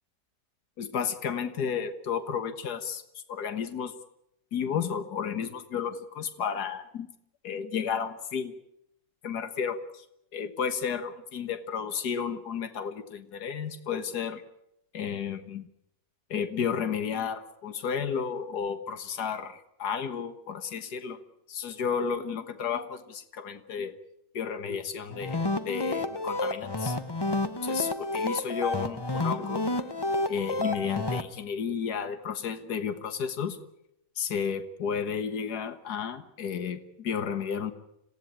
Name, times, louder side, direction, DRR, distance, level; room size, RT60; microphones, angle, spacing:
voice 1, 0.8-3.0 3.3-3.9 4.5-7.1 7.4-8.5 9.2-10.1 10.3-14.4 14.9-15.7 16.3-21.2 21.5-24.0 24.3-25.4 25.7-27.0 27.6-29.6 30.3-33.6 34.2-37.7, left 7 dB, 80° left, 10 dB, 1.9 m, -32 dB
sound 1, 25.1-31.2, left 2 dB, 20° left, 0.8 m, -30 dB
26.5 x 17.0 x 8.7 m, 0.80 s
omnidirectional pair, 1.7 m